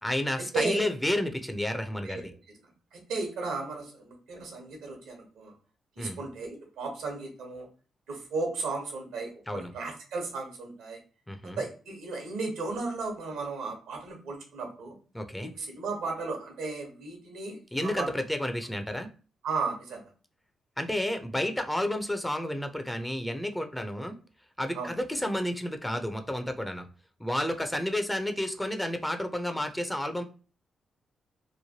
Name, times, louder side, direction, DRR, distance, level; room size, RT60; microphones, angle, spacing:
voice 1, 0.0-2.3 6.0-6.2 9.5-9.7 11.3-11.6 15.1-15.5 17.7-19.1 20.8-24.2 24.6-26.9 27.2-30.2, left 1 dB, 10° left, 7 dB, 0.5 m, -31 dB
voice 2, 0.5-0.9 2.0-2.2 2.9-5.5 6.0-7.7 8.1-11.0 11.4-15.0 15.4-18.2 19.4-20.1 24.7-24.9, right 3 dB, 80° right, 2 dB, 1.0 m, -35 dB
3.1 x 2.2 x 2.7 m, 0.36 s
supercardioid pair, 50°, 0 cm